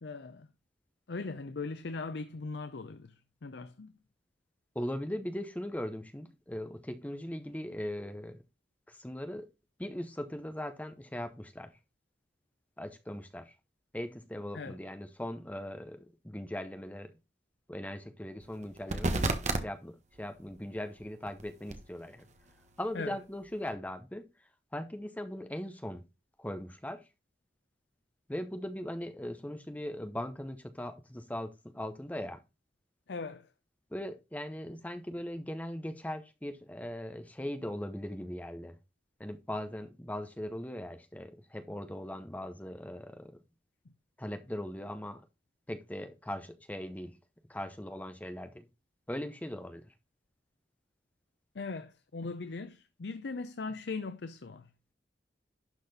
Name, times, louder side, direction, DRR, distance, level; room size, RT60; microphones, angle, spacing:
voice 1, 0.0-0.5 1.1-3.9 14.5-14.8 22.9-23.2 33.1-33.5 51.5-54.7, left 3 dB, 65° left, 0.6 m, -39 dB
voice 2, 4.7-8.4 8.9-9.5 9.8-11.8 12.8-13.5 13.9-17.1 17.7-19.3 19.6-22.3 22.8-24.2 24.7-26.0 26.4-27.1 28.3-32.4 33.9-38.8 39.2-43.4 44.2-45.2 45.7-47.2 47.5-48.6 49.1-49.9, left 1 dB, 10° left, 0.7 m, -39 dB
sound 1, 18.4-19.6 20.0-23.7, right 2 dB, 40° right, 1.2 m, -37 dB
11.5 x 4.2 x 4.1 m
head